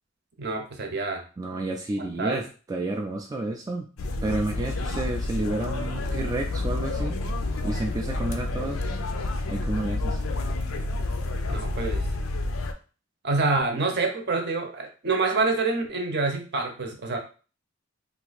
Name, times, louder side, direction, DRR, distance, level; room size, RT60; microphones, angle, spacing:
voice 1, 0.4-1.2 2.2-2.4 11.5-12.1 13.2-17.2, right 3 dB, 55° right, 4 dB, 0.7 m, -26 dB
voice 2, 1.4-3.9 4.2-7.2 7.6-8.9 9.5-10.2, right 2 dB, 20° right, 2 dB, 0.3 m, -30 dB
sound 1, 4.0-12.7, left 2 dB, 80° left, 0.5 m, -29 dB
2.8 x 2.5 x 4.0 m, 0.37 s
head